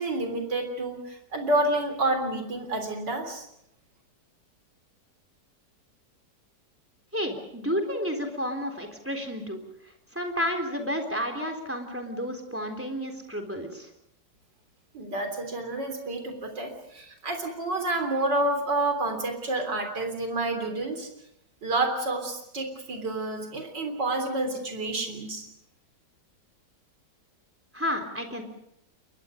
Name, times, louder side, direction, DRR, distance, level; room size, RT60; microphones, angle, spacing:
voice 1, 0.0-3.5 14.9-21.1 21.6-25.5, right 2 dB, 85° right, 5 dB, 4.2 m, -29 dB
voice 2, 7.1-9.6 10.1-13.9 27.7-28.4, equal, 5° right, 6 dB, 3.6 m, -31 dB
28.5 x 23.0 x 5.2 m, 0.76 s
omnidirectional pair, 1.9 m